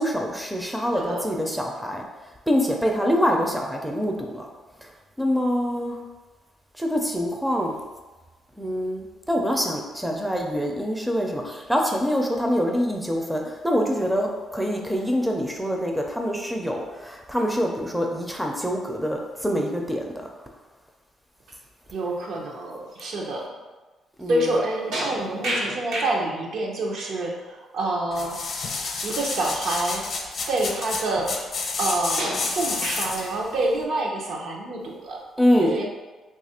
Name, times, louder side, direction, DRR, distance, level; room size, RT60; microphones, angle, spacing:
voice 1, 0.0-2.1 2.5-4.5 4.8-4.9 5.2-6.0 6.8-7.8 8.6-20.0 24.2-24.6 35.4-35.7, equal, ahead, 1 dB, 0.4 m, -25 dB
voice 2, 0.9-1.3 21.9-23.5 24.3-28.4 29.0-30.1 30.5-31.5 31.8-35.2 35.6-35.8, right 2 dB, 70° right, -1 dB, 0.7 m, -27 dB
sound 1, 24.9-26.2 29.1-29.2 29.9-30.0 32.2-33.2, right 1 dB, 90° right, 1.1 m, -30 dB
sound 2, 28.1-33.4 33.8-33.9, left 4 dB, 55° left, 0.6 m, -30 dB
2.8 x 2.4 x 4.2 m, 1.2 s
cardioid pair, 90°, 0 cm